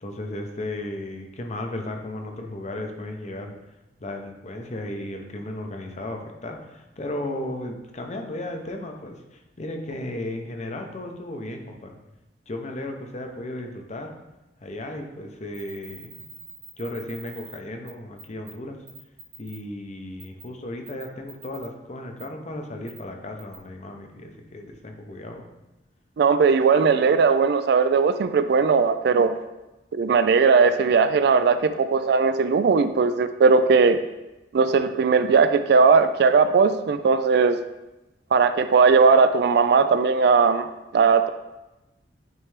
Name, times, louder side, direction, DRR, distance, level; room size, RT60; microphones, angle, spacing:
voice 1, 0.0-3.6 4.0-12.0 12.5-14.2 14.6-16.3 16.8-18.8 19.4-25.5, left 1 dB, 40° left, 4 dB, 0.6 m, -35 dB
sound 1, 15.5-17.6 17.9-18.0 18.2-18.5 18.9-19.6 20.2-20.4 20.8-21.7 22.2-22.3 22.9-23.0 23.4-23.5, right 3 dB, 40° right, 1.3 m, -44 dB
voice 2, 26.2-29.3 29.9-34.0 34.5-37.6 38.3-40.7 40.9-41.3, right 5 dB, 60° right, 11 dB, 0.3 m, -18 dB
9.0 x 3.2 x 3.2 m, 1.0 s
head